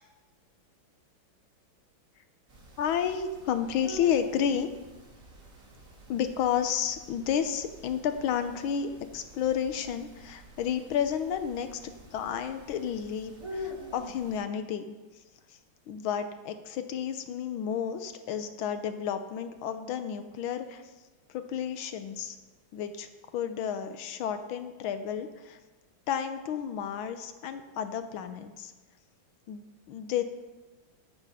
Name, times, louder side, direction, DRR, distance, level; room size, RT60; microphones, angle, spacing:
sound 1, 2.5-14.4, equal, 40° right, 2.1 m, -46 dB
voice 1, 2.8-4.7 6.1-14.9 15.5-15.6 15.9-20.8 21.3-22.4 22.7-25.6 26.1-28.7 29.5-30.2, left 8 dB, 80° left, 9 dB, 1.5 m, -31 dB
13.5 x 5.9 x 5.4 m, 1.2 s
omnidirectional pair, 2.2 m